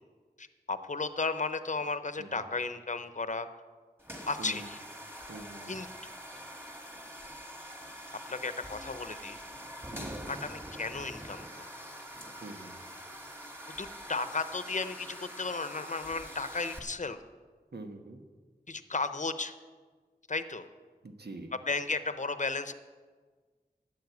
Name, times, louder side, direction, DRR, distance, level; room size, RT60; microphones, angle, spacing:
voice 1, 0.4-3.5 4.3-4.8 5.7-6.1 8.3-9.4 10.3-11.5 13.8-17.2 18.7-19.5 20.3-20.7 21.7-22.7, left 3 dB, 50° left, 11 dB, 0.8 m, -34 dB
sound 1, 4.0-16.8, equal, 15° right, 2.0 m, -45 dB
voice 2, 4.4-4.7 5.3-5.8 9.9-10.4 12.4-12.9 17.7-18.2 21.0-21.5, right 2 dB, 85° right, 4 dB, 1.3 m, -45 dB
12.0 x 8.8 x 8.1 m, 1.5 s
wide cardioid pair, 50°, 16 cm